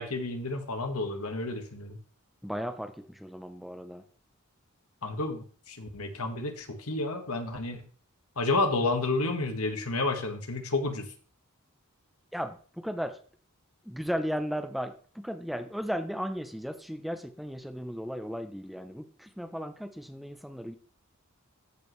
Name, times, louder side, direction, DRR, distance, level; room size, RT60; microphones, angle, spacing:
voice 1, 0.0-2.0 5.0-7.8 8.4-11.0, left 2 dB, 85° left, 5 dB, 1.6 m, -30 dB
voice 2, 2.4-2.9 3.2-4.0 12.3-13.1 13.9-20.8, equal, ahead, 8 dB, 0.7 m, -35 dB
13.5 x 5.1 x 3.2 m, 0.41 s
head